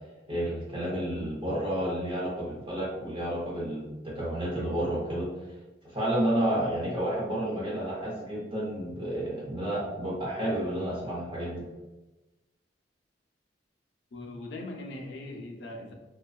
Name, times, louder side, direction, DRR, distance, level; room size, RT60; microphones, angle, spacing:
voice 1, 0.3-5.3 5.8-11.6, right 1 dB, 30° right, -5 dB, 0.6 m, -30 dB
voice 2, 14.1-15.9, left 2 dB, 65° left, 2 dB, 0.4 m, -40 dB
2.6 x 2.2 x 2.3 m, 1.1 s
head